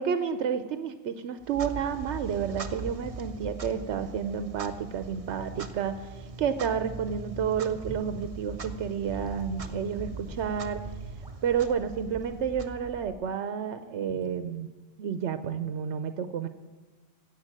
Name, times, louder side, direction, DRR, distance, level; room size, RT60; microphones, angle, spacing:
voice 1, 0.0-10.8 11.4-14.7 15.0-16.5, right 7 dB, 80° right, 10 dB, 1.0 m, -30 dB
Clock, 1.4-13.4, right 4 dB, 35° right, 0.7 m, -41 dB
Gurgling / Sink (filling or washing) / Liquid, 7.9-8.1 9.1-11.8 12.1-12.4 12.9-13.2 14.1-14.3, right 2 dB, 5° right, 2.4 m, -46 dB
15.5 x 8.2 x 7.4 m, 1.2 s
omnidirectional pair, 1.2 m